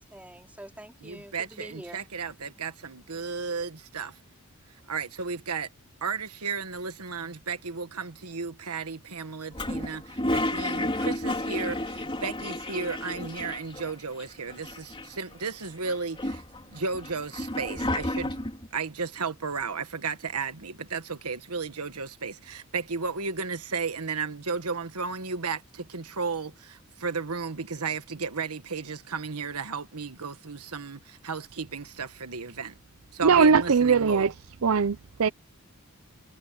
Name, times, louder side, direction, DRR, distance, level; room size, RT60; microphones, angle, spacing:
voice 1, 0.0-2.0, right 1 dB, 5° right, 4.2 m, -45 dB
voice 2, 1.0-4.2 4.9-5.7 6.0-18.4 18.7-32.7 33.1-34.3, right 5 dB, 90° right, 1.5 m, -34 dB
Toilet flush, 9.5-13.9 14.2-14.3 14.5-15.3 15.8-18.7, left 1 dB, 25° left, 3.9 m, -31 dB
voice 3, 33.2-34.3 34.6-35.3, right 5 dB, 70° right, 0.6 m, -20 dB
head